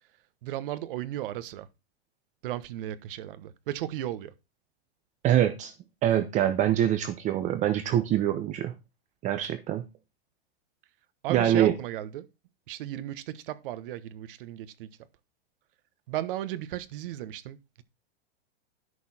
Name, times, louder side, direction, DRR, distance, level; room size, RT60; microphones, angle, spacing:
voice 1, 0.4-1.7 2.4-4.3 11.2-12.3 12.7-14.9 16.1-17.8, right 13 dB, 55° right, 1.2 m, -35 dB
voice 2, 5.2-5.7 6.0-8.8 9.2-9.9 11.3-11.7, right 11 dB, 25° right, 0.7 m, -24 dB
11.0 x 6.5 x 4.2 m
supercardioid pair, 155°, 32 cm